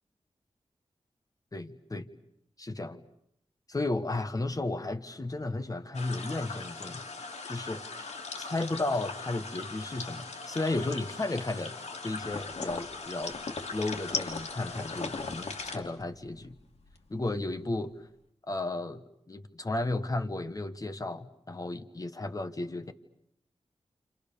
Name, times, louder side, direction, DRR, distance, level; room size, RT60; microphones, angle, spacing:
voice 1, 1.5-2.1 2.6-3.0 3.7-7.0 7.5-11.7 12.0-13.4 13.7-16.5 17.1-17.9 18.5-22.9, left 2 dB, 30° left, 8 dB, 1.5 m, -34 dB
sound 1, 5.9-15.8, left 4 dB, 85° left, 3.2 m, -40 dB
sound 2, 12.2-16.6 16.8-17.4, left 3 dB, 70° left, 2.6 m, -41 dB
29.0 x 27.5 x 6.9 m, 0.77 s
wide cardioid pair, 90°, 11 cm